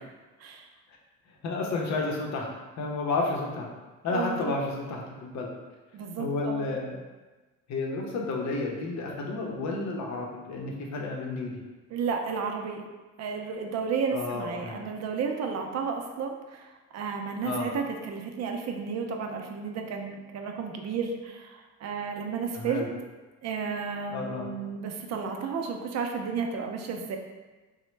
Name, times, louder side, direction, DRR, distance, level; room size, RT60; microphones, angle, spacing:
voice 1, 1.4-2.5 2.8-3.7 4.0-5.5 6.2-6.9 7.7-11.6 14.1-14.8 17.4-17.7 22.5-22.9 24.1-24.5, left 3 dB, 65° left, 0 dB, 0.7 m, -31 dB
voice 2, 4.1-4.5 5.9-6.7 11.9-12.8 13.2-22.9 23.4-27.2, right 5 dB, 60° right, 3 dB, 0.5 m, -32 dB
3.0 x 2.1 x 3.1 m, 1.2 s
cardioid pair, 90°, 30 cm